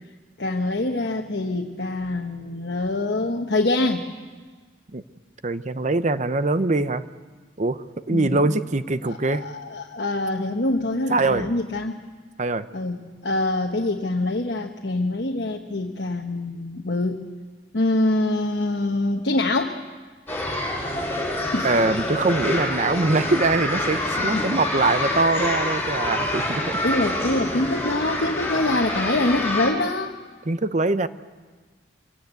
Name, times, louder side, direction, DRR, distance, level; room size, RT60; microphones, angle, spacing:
voice 1, 0.4-4.1 8.1-8.5 9.0-12.0 12.7-17.2 17.7-19.8 21.5-21.7 24.2-24.5 26.8-30.1, left 2 dB, 65° left, 2 dB, 1.2 m, -25 dB
voice 2, 5.4-7.0 7.6-9.4 11.1-11.5 12.4-12.7 21.6-26.8 30.5-31.1, right 3 dB, 40° right, 12 dB, 0.8 m, -23 dB
sound 1, 20.3-29.7, left 1 dB, 15° left, 5.1 m, -26 dB
25.0 x 17.5 x 8.1 m, 1.4 s
head